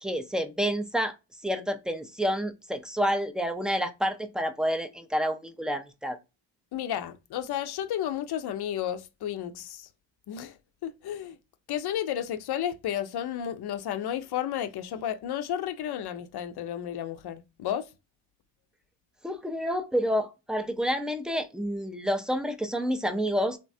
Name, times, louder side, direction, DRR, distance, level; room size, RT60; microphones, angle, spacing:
voice 1, 0.0-1.1 1.4-6.2 19.2-23.6, equal, ahead, 0.3 m, -29 dB
voice 2, 6.7-9.9 10.3-10.6 10.8-11.4 11.7-17.9, left 10 dB, 55° left, 0.6 m, -32 dB
3.2 x 2.1 x 2.6 m
supercardioid pair, 60°, 46 cm